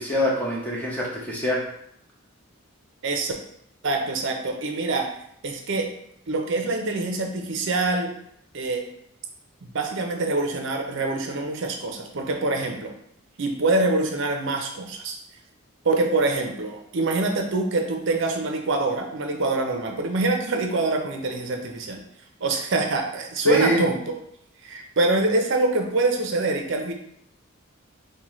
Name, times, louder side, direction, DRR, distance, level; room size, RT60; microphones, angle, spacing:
voice 1, 0.0-1.6 23.4-23.8, equal, 5° left, -4 dB, 0.8 m, -23 dB
voice 2, 3.0-3.3 3.8-5.1 5.4-5.9 6.3-8.1 8.5-8.8 9.7-12.9 13.4-15.2 15.8-22.0 22.4-24.1 24.6-26.9, right 2 dB, 55° right, 3 dB, 0.6 m, -25 dB
5.2 x 2.2 x 3.0 m, 0.70 s
head